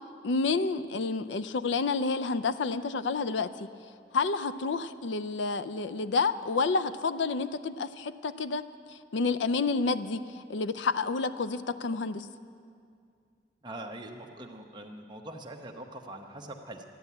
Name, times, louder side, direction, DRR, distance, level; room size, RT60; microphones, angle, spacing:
voice 1, 0.2-3.7 4.1-8.6 8.9-12.3, left 4 dB, 80° left, 14 dB, 0.5 m, -29 dB
voice 2, 13.6-16.8, right 1 dB, 25° right, 2 dB, 1.0 m, -43 dB
13.5 x 10.5 x 8.3 m, 2.3 s
head